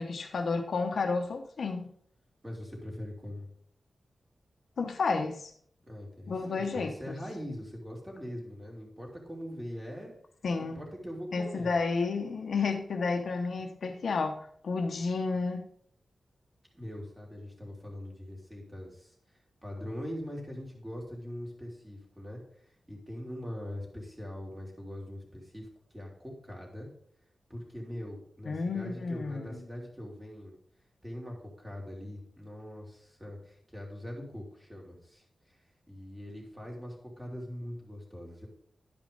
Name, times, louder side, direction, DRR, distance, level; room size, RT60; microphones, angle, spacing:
voice 1, 0.0-1.9 4.8-5.5 6.3-7.2 10.4-10.8 11.3-15.7 28.4-29.6, left 4 dB, 70° left, 4 dB, 0.9 m, -31 dB
voice 2, 2.4-3.5 5.9-10.1 10.6-11.7 16.7-25.7 25.9-26.9 27.5-30.5 31.0-35.6 35.9-38.5, equal, 15° right, -2 dB, 2.8 m, -42 dB
11.0 x 5.2 x 5.1 m, 0.63 s
wide cardioid pair, 135°, 0 cm